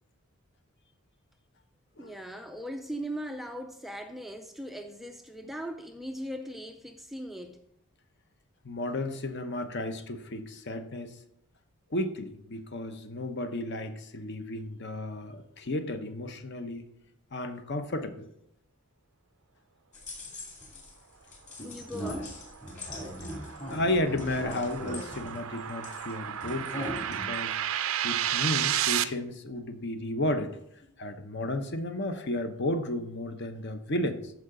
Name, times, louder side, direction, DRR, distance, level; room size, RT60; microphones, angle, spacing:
voice 1, 2.0-7.6 9.1-9.2 21.6-22.3, equal, ahead, 0.3 m, -39 dB
voice 2, 8.6-11.2 11.9-16.9 17.3-18.3 23.4-27.6 28.0-30.6 31.0-34.3, left 1 dB, 50° left, 0.8 m, -33 dB
sound 1, 19.9-20.9 21.3-26.1 26.4-27.5, equal, 30° left, 2.3 m, -39 dB
sound 2, 22.2-29.0, right 11 dB, 70° right, 0.5 m, -32 dB
13.5 x 4.7 x 3.8 m
head